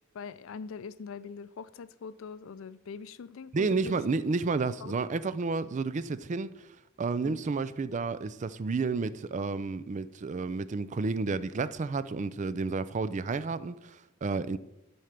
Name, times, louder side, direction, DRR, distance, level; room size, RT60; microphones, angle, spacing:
voice 1, 0.1-4.0 4.8-4.9 7.2-7.5, left 5 dB, 70° left, 0.4 m, -42 dB
voice 2, 3.5-6.5 7.0-14.6, right 4 dB, 35° right, 0.4 m, -31 dB
11.0 x 4.3 x 5.1 m
head